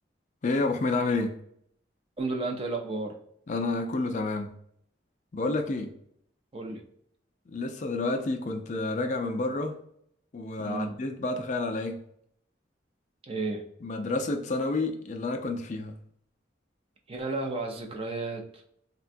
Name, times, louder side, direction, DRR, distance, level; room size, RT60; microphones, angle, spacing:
voice 1, 0.4-1.4 3.5-4.5 5.3-5.9 7.5-9.8 10.3-12.0 13.8-16.0, left 2 dB, 40° left, 0.4 m, -29 dB
voice 2, 2.2-3.2 6.5-6.8 10.6-10.9 13.3-13.7 17.1-18.6, right 3 dB, 30° right, 0.5 m, -32 dB
3.5 x 2.2 x 2.5 m
head